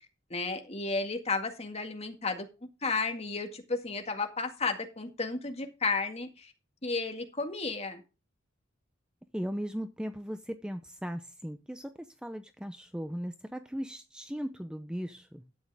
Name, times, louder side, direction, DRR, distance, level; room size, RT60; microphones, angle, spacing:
voice 1, 0.3-2.5 2.8-6.5 6.8-8.0, left 3 dB, 35° left, 5 dB, 1.9 m, -33 dB
voice 2, 9.3-15.4, equal, 5° right, 8 dB, 0.7 m, -38 dB
12.0 x 8.8 x 3.5 m, 0.29 s
head